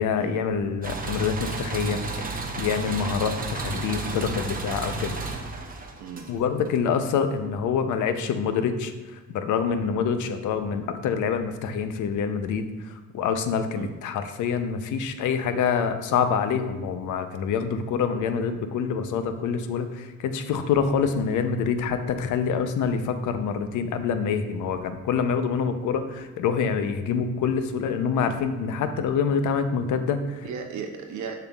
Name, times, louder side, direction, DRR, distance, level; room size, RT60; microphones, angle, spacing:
voice 1, 0.0-2.3 2.6-5.1 6.3-8.9 9.3-12.7 13.1-30.4, left 6 dB, 80° left, 9 dB, 0.6 m, -26 dB
sound 1, 0.8-6.7, right 3 dB, 30° right, 0.8 m, -32 dB
voice 2, 30.4-31.4, right 6 dB, 70° right, 4 dB, 0.6 m, -36 dB
7.0 x 5.7 x 2.3 m, 1.2 s
cardioid pair, 90°, 30 cm